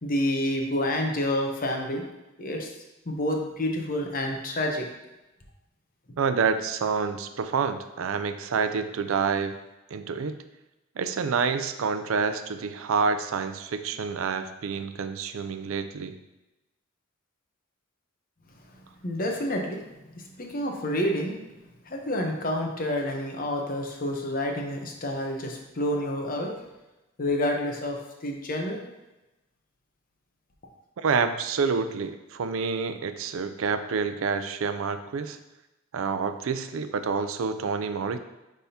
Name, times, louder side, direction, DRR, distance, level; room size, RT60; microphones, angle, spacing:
voice 1, 0.0-2.0 2.4-2.7 3.1-4.9 19.0-19.8 20.1-21.4 21.8-26.6 27.2-28.8, left 1 dB, 45° left, 2 dB, 0.9 m, -28 dB
voice 2, 6.2-9.6 9.9-10.4 11.0-16.2 31.0-35.4 35.9-38.2, right 5 dB, 85° right, 10 dB, 0.4 m, -28 dB
9.7 x 3.6 x 2.8 m, 1.0 s
head